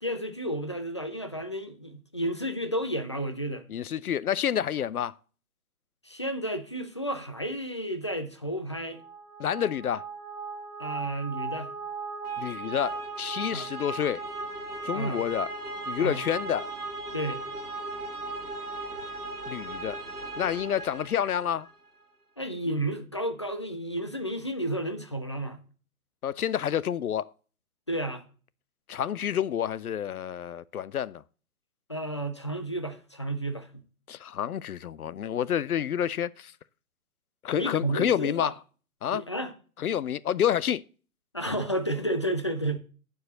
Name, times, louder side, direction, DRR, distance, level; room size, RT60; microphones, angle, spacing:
voice 1, 0.0-3.6 6.0-9.0 10.8-11.7 13.5-13.7 14.9-15.2 16.0-16.2 17.1-17.4 22.4-25.6 27.9-28.2 31.9-33.8 37.6-38.5 39.1-39.5 41.3-42.8, right 1 dB, 20° left, 0.4 m, -32 dB
voice 2, 3.7-5.1 9.4-10.0 12.4-14.2 14.8-15.5 15.9-16.7 19.5-20.0 20.4-21.7 26.2-27.3 28.9-31.2 34.1-36.5 37.4-38.5 39.0-39.2 39.8-40.8, left 9 dB, 75° left, 0.5 m, -29 dB
sound 1, 8.9-21.7, right 3 dB, 85° right, 1.5 m, -37 dB
9.4 x 4.7 x 7.8 m
figure-of-eight pair, 130°, 44 cm